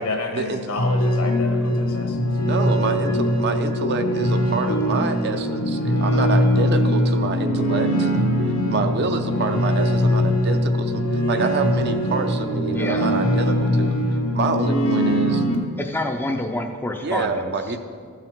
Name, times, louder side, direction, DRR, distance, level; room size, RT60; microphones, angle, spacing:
voice 1, 0.0-2.2, left 2 dB, 70° left, 3 dB, 1.3 m, -29 dB
sound 1, 0.8-15.6, equal, 90° left, 1.3 m, -21 dB
voice 2, 2.4-8.1 8.7-13.9 14.3-15.4 17.0-17.8, right 3 dB, 50° right, 7 dB, 0.6 m, -27 dB
voice 3, 12.7-13.2 15.8-17.5, left 1 dB, 10° left, 3 dB, 0.4 m, -27 dB
14.0 x 5.7 x 4.5 m, 2.1 s
head